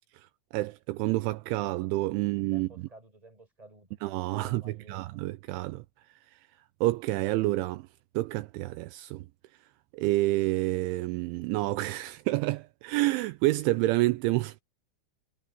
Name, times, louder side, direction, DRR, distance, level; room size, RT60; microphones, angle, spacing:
voice 1, 0.5-2.7 4.0-5.8 6.8-7.9 8.1-9.3 9.9-14.6, right 19 dB, 80° right, 2.9 m, -28 dB
voice 2, 2.1-4.0 4.3-5.0, right 2 dB, 5° right, 5.5 m, -53 dB
omnidirectional pair, 5.6 m